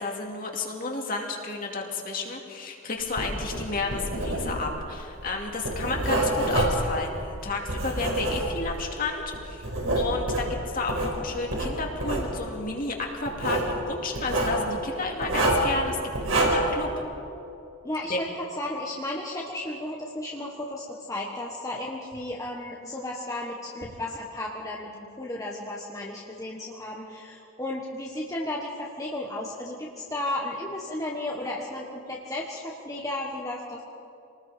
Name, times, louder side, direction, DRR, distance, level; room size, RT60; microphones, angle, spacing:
voice 1, 0.0-9.7 9.9-16.9 18.1-18.2, left 3 dB, 40° left, 1 dB, 2.7 m, -32 dB
Writing, 3.1-8.9 9.3-11.1 11.5-12.3 13.3-13.7 14.1-14.6 15.2-15.7 16.1-16.7, right 1 dB, 75° right, 5.0 m, -27 dB
voice 2, 17.8-18.3 18.6-33.8, left 1 dB, 15° left, -3 dB, 1.5 m, -34 dB
27.0 x 20.0 x 5.2 m, 2.7 s
head